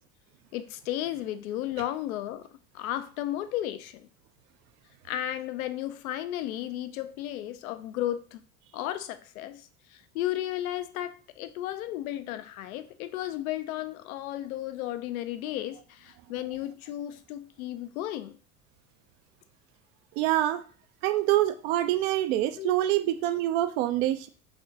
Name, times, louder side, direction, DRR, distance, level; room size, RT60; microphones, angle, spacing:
voice 1, 0.5-2.5 2.7-4.1 5.1-8.4 8.7-18.3 22.6-22.7, left 13 dB, 75° left, 0.5 m, -34 dB
voice 2, 20.2-20.6 21.0-24.3, right 14 dB, 60° right, 0.5 m, -25 dB
4.2 x 2.9 x 2.7 m
figure-of-eight pair, 65°, 43 cm